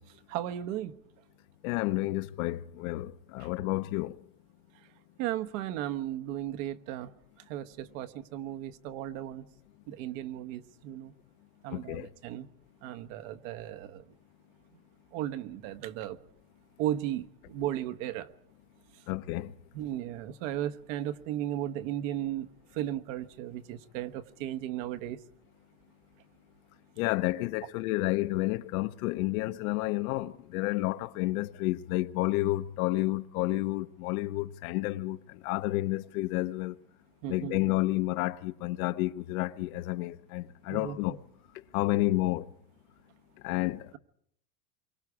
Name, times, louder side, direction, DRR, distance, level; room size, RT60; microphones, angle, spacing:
voice 1, 0.3-1.0 3.4-3.5 5.2-7.1 7.5-9.4 9.9-11.1 11.6-12.5 12.8-14.0 15.1-16.2 16.8-18.3 19.7-25.2 37.2-37.6 40.7-41.2, right 12 dB, 65° right, 1.2 m, -35 dB
voice 2, 1.6-4.2 11.7-12.1 19.1-19.5 27.0-36.7 37.3-41.2 41.7-42.5 43.4-43.9, left 18 dB, 70° left, 0.9 m, -30 dB
27.5 x 24.0 x 4.8 m
supercardioid pair, 160°, 43 cm